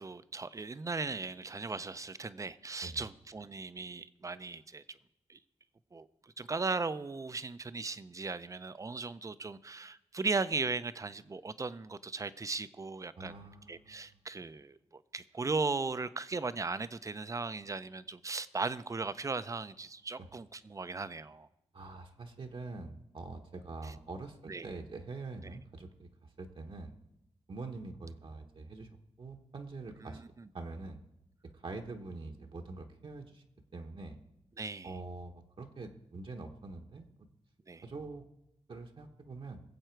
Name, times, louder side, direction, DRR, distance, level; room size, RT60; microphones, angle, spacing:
voice 1, 0.0-4.8 5.3-5.4 5.9-6.1 6.4-13.3 13.7-14.7 15.1-21.5 23.8-23.9 24.5-24.7 30.0-30.2 34.6-34.9 37.7-37.8, right 3 dB, 30° right, 15 dB, 0.5 m, -37 dB
voice 2, 13.2-14.1 20.2-20.3 21.7-26.9 27.5-30.2 30.5-31.0 31.5-33.4 33.7-34.2 34.8-37.1 37.8-38.3 38.7-39.6, right 3 dB, 50° right, 2 dB, 1.0 m, -45 dB
21.0 x 7.8 x 4.5 m, 0.84 s
wide cardioid pair, 115°, 11 cm